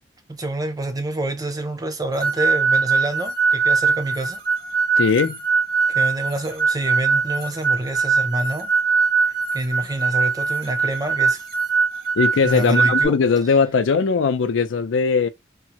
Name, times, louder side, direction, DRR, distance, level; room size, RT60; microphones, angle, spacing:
voice 1, 0.3-4.4 5.9-8.7 9.5-11.4 12.4-13.2, right 1 dB, 20° right, 0.4 m, -27 dB
sound 1, 2.2-13.1, right 5 dB, 55° right, 0.7 m, -21 dB
voice 2, 5.0-5.4 12.2-15.3, left 5 dB, 80° left, 0.4 m, -19 dB
3.5 x 2.1 x 2.8 m
head